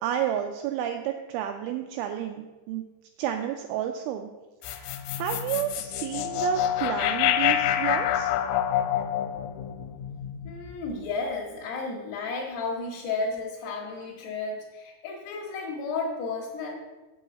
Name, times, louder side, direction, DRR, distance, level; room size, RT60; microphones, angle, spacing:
voice 1, 0.0-2.9 3.2-4.3 4.7-8.3, right 10 dB, 85° right, 5 dB, 2.8 m, -31 dB
sound 1, 4.6-11.0, left 11 dB, 85° left, 3.1 m, -27 dB
voice 2, 10.4-16.8, left 3 dB, 65° left, -4 dB, 2.8 m, -33 dB
8.6 x 4.9 x 7.6 m, 1.2 s
omnidirectional pair, 6.0 m